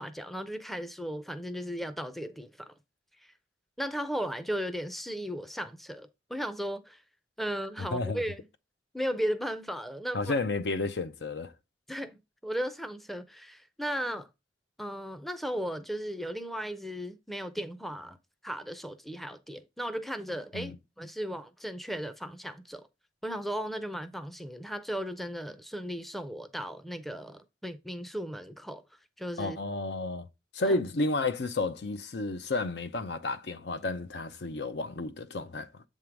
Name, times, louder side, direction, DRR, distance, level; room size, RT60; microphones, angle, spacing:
voice 1, 0.0-2.7 3.2-3.3 3.8-7.0 7.4-8.4 8.9-10.3 11.9-14.3 14.8-18.2 18.4-22.9 23.2-28.8 29.2-29.6 30.6-30.8, equal, ahead, 0.5 m, -36 dB
voice 2, 7.9-8.2 10.1-11.5 20.5-20.8 29.4-30.3 30.5-35.8, left 2 dB, 70° left, 0.6 m, -31 dB
7.7 x 3.7 x 4.6 m
head